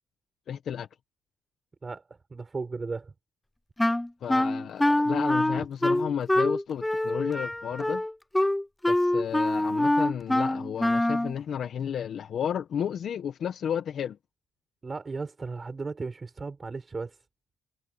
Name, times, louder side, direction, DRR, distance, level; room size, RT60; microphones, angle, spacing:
voice 1, 0.5-0.9 4.2-8.0 8.9-14.2, left 8 dB, 60° left, 1.5 m, -32 dB
voice 2, 2.3-3.1 14.8-17.2, right 4 dB, 25° right, 5.3 m, -35 dB
Wind instrument woodwind instrument, 3.8-11.3, left 1 dB, 10° left, 0.5 m, -25 dB
cardioid pair, 95°, 0 cm